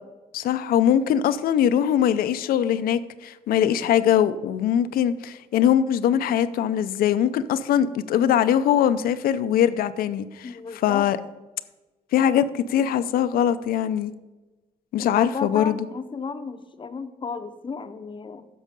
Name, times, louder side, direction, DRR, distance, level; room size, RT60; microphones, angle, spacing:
voice 1, 0.3-10.5 10.8-11.2 12.1-14.1 14.9-15.8, left 9 dB, 80° left, 0.5 m, -22 dB
voice 2, 10.4-11.1 15.0-18.5, left 5 dB, 35° left, 0.7 m, -33 dB
10.0 x 6.4 x 5.2 m
cardioid pair, 95°, 15 cm